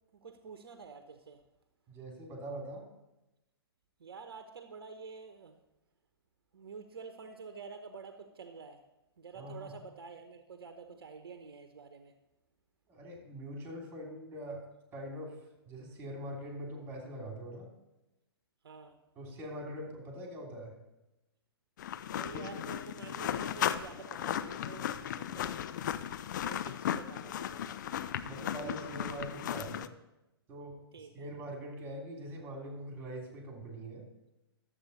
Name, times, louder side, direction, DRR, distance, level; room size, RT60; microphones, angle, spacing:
voice 1, 0.1-1.4 4.0-5.6 6.5-8.8 9.2-12.1 18.6-19.0 22.1-25.6 26.4-27.7 30.9-31.3, right 5 dB, 65° right, 7 dB, 1.0 m, -48 dB
voice 2, 1.9-2.9 9.3-9.7 12.9-14.7 14.9-15.4 15.7-17.7 19.1-20.7 22.3-22.4 28.2-29.9 30.5-34.1, right 1 dB, 15° right, 1 dB, 3.0 m, -43 dB
sound 1, 21.8-29.9, left 10 dB, 50° left, 0.5 m, -36 dB
12.5 x 7.7 x 4.2 m, 0.95 s
figure-of-eight pair, 125°, 13 cm